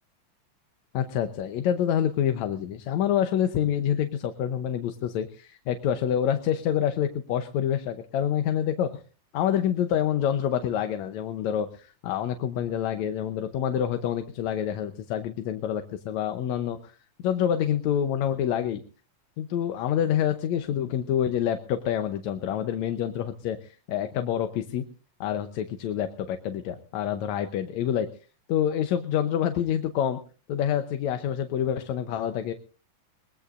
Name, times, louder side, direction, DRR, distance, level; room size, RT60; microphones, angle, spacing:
voice 1, 0.9-8.9 9.3-16.9 17.2-18.8 19.4-24.8 25.2-28.1 28.5-30.2 30.5-32.5, left 9 dB, 75° left, 8 dB, 2.1 m, -27 dB
22.0 x 20.0 x 2.5 m, 0.37 s
omnidirectional pair, 3.4 m